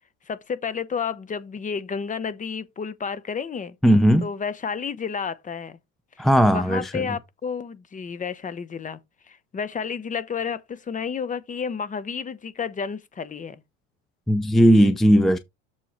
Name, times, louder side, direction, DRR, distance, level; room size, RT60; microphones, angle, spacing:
voice 1, 0.3-3.8 4.2-5.8 6.2-13.6, left 6 dB, 20° left, 0.9 m, -31 dB
voice 2, 3.8-4.3 6.2-7.0 14.3-15.4, equal, ahead, 0.5 m, -17 dB
7.4 x 6.9 x 3.1 m
supercardioid pair, 110°, 36 cm